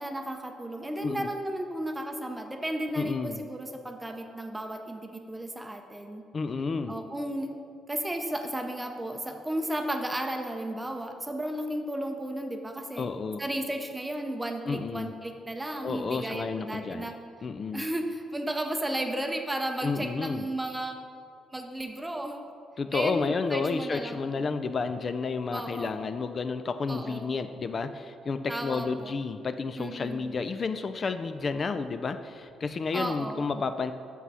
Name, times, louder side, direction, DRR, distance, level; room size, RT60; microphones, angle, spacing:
voice 1, 0.0-5.0 5.3-6.2 6.9-7.5 7.9-13.1 13.4-17.1 17.7-21.0 21.5-22.4 22.9-24.5 25.5-26.0 26.9-27.3 28.5-29.1 29.8-30.3 32.9-33.4, right 1 dB, 10° right, 4 dB, 0.6 m, -34 dB
voice 2, 3.0-3.4 6.3-7.0 13.0-13.4 14.7-15.2 15.8-17.2 17.4-17.9 19.8-20.5 22.8-33.9, left 4 dB, 40° left, 10 dB, 0.3 m, -31 dB
6.1 x 5.7 x 5.5 m, 2.4 s
cardioid pair, 90°, 0 cm